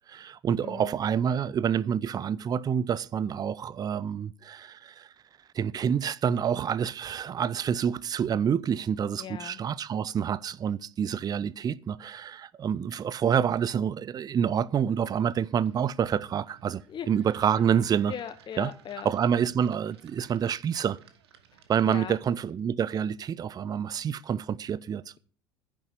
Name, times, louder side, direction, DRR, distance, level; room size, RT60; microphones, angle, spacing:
voice 1, 0.1-5.1 5.5-16.8 17.1-18.1 18.6-18.7 19.0-21.0 21.7-25.0, right 8 dB, 30° right, 0.5 m, -27 dB
voice 2, 0.6-1.0 9.2-9.6 16.9-17.1 18.1-19.1 21.5-22.2, left 9 dB, 35° left, 1.1 m, -39 dB
sound 1, 14.9-22.6, right 8 dB, 70° right, 1.4 m, -58 dB
10.0 x 6.9 x 8.2 m
figure-of-eight pair, 65°, 14 cm